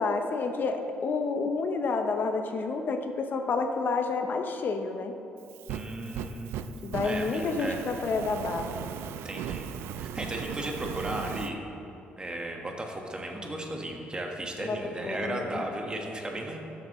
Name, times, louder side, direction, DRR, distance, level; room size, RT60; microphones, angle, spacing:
voice 1, 0.0-5.1 6.8-8.9 14.6-14.8 15.0-15.6, left 4 dB, 50° left, 5 dB, 0.7 m, -29 dB
Fire, 5.4-11.5, right 8 dB, 80° right, 0.4 m, -38 dB
voice 2, 5.7-6.7 7.0-7.8 9.2-9.7 10.0-11.6 12.2-16.6, right 1 dB, 20° right, 1 dB, 1.4 m, -35 dB
13.0 x 7.5 x 3.1 m, 2.9 s
cardioid pair, 80°, 4 cm